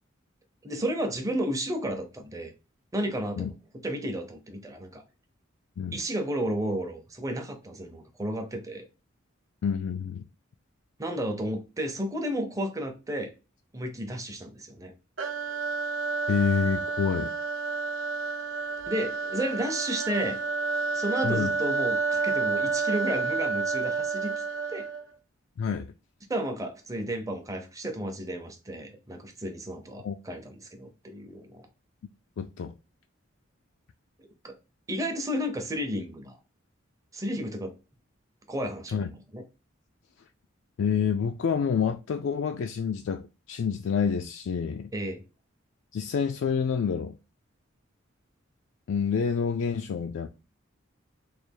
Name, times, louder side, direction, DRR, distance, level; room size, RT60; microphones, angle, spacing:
voice 1, 0.6-2.5 2.9-3.5 3.8-5.0 5.9-8.9 11.0-13.3 13.7-14.9 18.9-20.4 20.9-24.4 24.7-24.9 26.3-31.6 34.4-34.5 34.9-36.4 37.1-37.7 38.5-39.4 44.9-45.2, right 1 dB, 15° right, 0.6 m, -32 dB
voice 2, 9.6-10.2 16.3-17.3 21.2-21.5 25.6-25.9 30.0-30.2 32.4-32.7 38.9-39.1 40.8-44.9 45.9-47.2 48.9-50.3, left 6 dB, 65° left, 0.3 m, -28 dB
sound 1, 15.2-25.1, right 4 dB, 75° right, 0.8 m, -30 dB
3.3 x 2.4 x 4.4 m
head